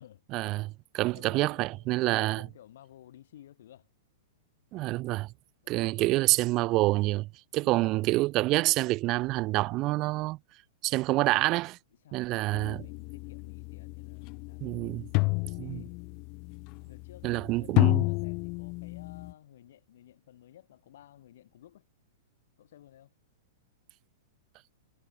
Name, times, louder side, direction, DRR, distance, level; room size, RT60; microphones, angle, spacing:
voice 1, 0.3-2.4 4.7-5.3 5.7-10.4 10.8-11.8 12.1-12.8 14.6-15.1 15.6-15.8 17.2-18.0, right 19 dB, 30° right, 0.4 m, -27 dB
voice 2, 1.1-3.9 5.6-6.1 7.6-7.9 12.0-16.0 16.9-21.9 22.6-23.1, left 12 dB, 70° left, 6.2 m, -55 dB
sound 1, 12.5-19.3, left 31 dB, 35° left, 0.4 m, -31 dB
supercardioid pair, 160°, 0 cm